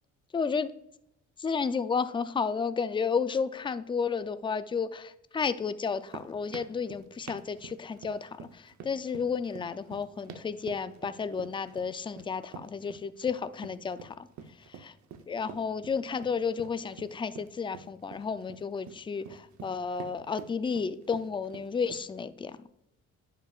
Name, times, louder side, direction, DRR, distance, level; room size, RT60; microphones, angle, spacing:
voice 1, 0.3-0.7 1.4-14.3 14.7-14.9 15.3-22.5, left 5 dB, 15° left, 12 dB, 0.4 m, -32 dB
sound 1, 5.8-22.2, right 7 dB, 65° right, 0.8 m, -48 dB
10.5 x 6.1 x 2.4 m, 0.79 s
cardioid pair, 90°, 30 cm